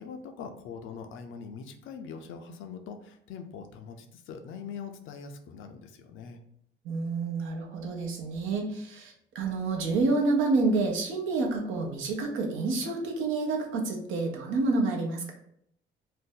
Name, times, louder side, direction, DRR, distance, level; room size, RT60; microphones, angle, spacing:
voice 1, 0.0-6.4, left 6 dB, 80° left, 6 dB, 0.5 m, -42 dB
voice 2, 6.8-15.3, right 3 dB, 85° right, 1 dB, 0.7 m, -28 dB
2.6 x 2.1 x 3.7 m, 0.70 s
cardioid pair, 90°, 20 cm